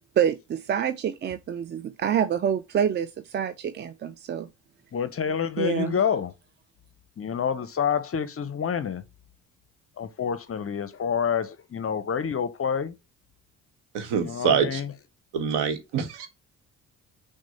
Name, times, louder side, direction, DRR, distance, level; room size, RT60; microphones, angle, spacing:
voice 1, 0.2-4.5 5.6-6.0, right 8 dB, 25° right, 0.3 m, -27 dB
voice 2, 4.9-6.3 7.2-9.0 10.0-12.9 14.2-14.9, left 7 dB, 30° left, 0.6 m, -28 dB
voice 3, 13.9-14.8 15.3-16.3, right 7 dB, 60° right, 1.1 m, -25 dB
6.0 x 2.2 x 3.9 m
figure-of-eight pair, 45°, 46 cm